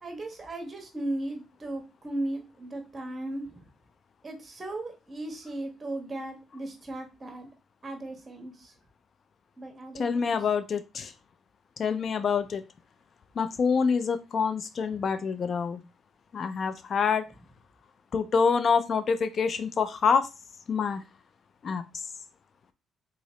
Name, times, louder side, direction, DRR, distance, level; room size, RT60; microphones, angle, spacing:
voice 1, 0.0-3.7 4.2-7.5 7.8-8.7 9.6-10.4, right 1 dB, 30° right, 3 dB, 1.3 m, -36 dB
voice 2, 9.9-11.1 11.8-12.6 13.4-15.8 16.3-17.3 18.1-20.3 20.7-21.0 21.6-21.8, left 5 dB, 50° left, 11 dB, 0.4 m, -26 dB
3.7 x 2.8 x 3.1 m, 0.28 s
cardioid pair, 90°, 0 cm